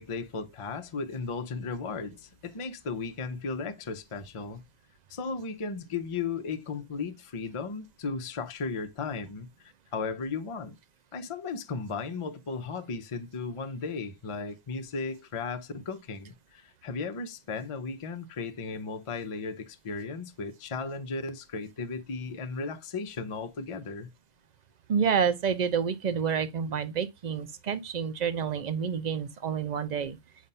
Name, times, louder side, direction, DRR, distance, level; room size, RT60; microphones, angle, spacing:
voice 1, 0.0-4.6 5.1-10.8 11.1-24.1, left 4 dB, 40° left, 0.5 m, -35 dB
voice 2, 24.9-30.2, right 7 dB, 50° right, 0.5 m, -28 dB
7.2 x 2.4 x 5.4 m
omnidirectional pair, 1.4 m